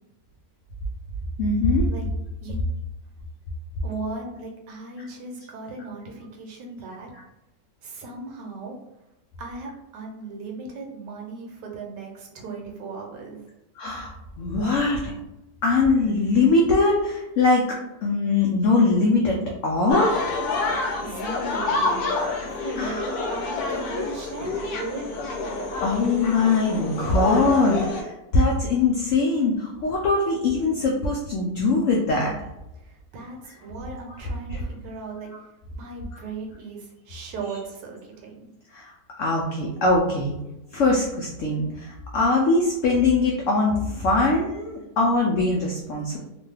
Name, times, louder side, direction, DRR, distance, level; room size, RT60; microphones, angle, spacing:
voice 1, 1.4-1.9 13.8-15.1 15.6-20.3 22.8-23.2 25.8-32.3 34.5-34.6 38.7-40.3 40.7-46.2, left 3 dB, 90° left, -1 dB, 0.6 m, -22 dB
voice 2, 3.8-7.1 7.8-8.8 9.4-13.5 20.9-22.2 22.5-25.0 32.8-35.3 35.7-38.5, right 3 dB, 75° right, 1 dB, 1.3 m, -37 dB
sound 1, 19.9-28.0, left 3 dB, 70° left, 1.1 m, -28 dB
3.0 x 2.2 x 3.2 m, 0.93 s
omnidirectional pair, 1.9 m